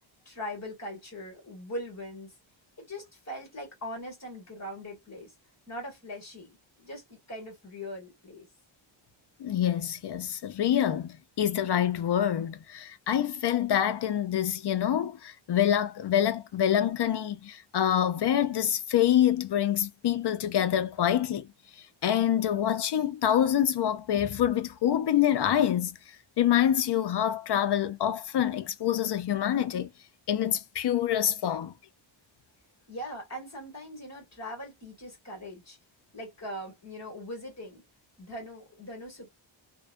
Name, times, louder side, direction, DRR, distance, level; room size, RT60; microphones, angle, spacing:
voice 1, 0.2-2.3 2.8-5.3 5.7-8.5 32.9-35.8 36.1-37.8 38.2-39.3, equal, 35° left, 1.5 m, -41 dB
voice 2, 9.4-21.5 22.0-26.0 26.4-29.9 30.3-31.7, left 10 dB, 55° left, 0.5 m, -26 dB
2.6 x 2.2 x 2.2 m
wide cardioid pair, 170°, 49 cm